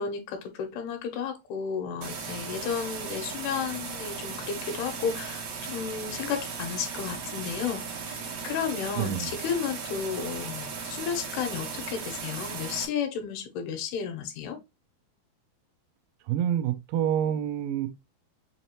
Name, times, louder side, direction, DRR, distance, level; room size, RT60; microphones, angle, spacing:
voice 1, 0.0-14.6, left 7 dB, 90° left, 3.0 m, -33 dB
sound 1, 2.0-12.9, right 5 dB, 60° right, 2.1 m, -37 dB
voice 2, 9.0-9.3 16.3-17.9, right 10 dB, 80° right, 2.1 m, -27 dB
6.5 x 2.8 x 2.9 m
omnidirectional pair, 4.4 m